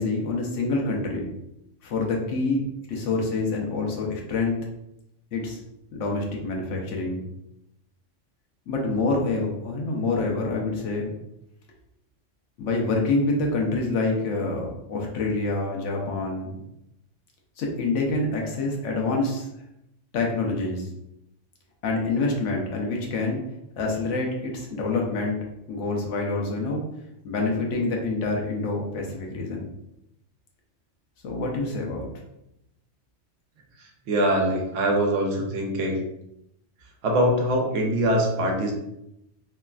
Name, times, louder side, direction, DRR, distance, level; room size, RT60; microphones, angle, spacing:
voice 1, 0.0-1.3 1.8-4.6 5.3-5.6 5.9-7.2 8.7-11.1 12.6-16.6 17.6-19.5 20.1-20.9 21.8-23.4 23.8-26.8 27.2-29.7 31.2-32.1, left 3 dB, 75° left, 0 dB, 1.0 m, -26 dB
voice 2, 34.1-36.0 37.0-38.7, right 1 dB, 80° right, 1 dB, 1.0 m, -23 dB
3.1 x 2.2 x 2.3 m, 0.83 s
omnidirectional pair, 1.3 m